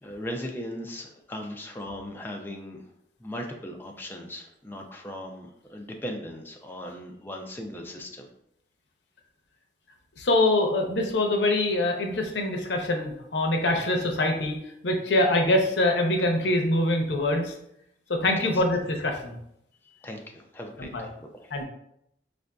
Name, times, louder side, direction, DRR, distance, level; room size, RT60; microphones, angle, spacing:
voice 1, 0.0-2.9 3.2-8.3 18.3-18.6 19.8-21.6, equal, 10° left, 2 dB, 0.4 m, -38 dB
voice 2, 10.2-14.6 14.8-17.5 18.1-19.3 20.8-21.0 21.5-21.6, left 1 dB, 80° left, 3 dB, 0.6 m, -24 dB
4.9 x 2.5 x 2.2 m, 0.76 s
head